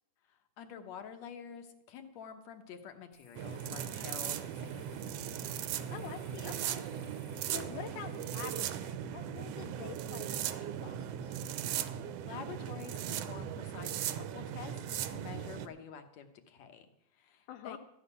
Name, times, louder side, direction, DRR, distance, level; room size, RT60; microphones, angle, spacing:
voice 1, 0.3-4.9 11.9-17.8, left 7 dB, 65° left, 7 dB, 2.1 m, -48 dB
sound 1, 3.1-8.9, left 4 dB, 35° left, 1.9 m, -61 dB
sound 2, 3.4-15.7, right 10 dB, 75° right, 1.5 m, -38 dB
voice 2, 5.9-6.9 7.4-11.4 17.5-17.8, left 10 dB, 85° left, 5 dB, 2.2 m, -47 dB
14.0 x 6.5 x 9.8 m, 0.79 s
omnidirectional pair, 3.6 m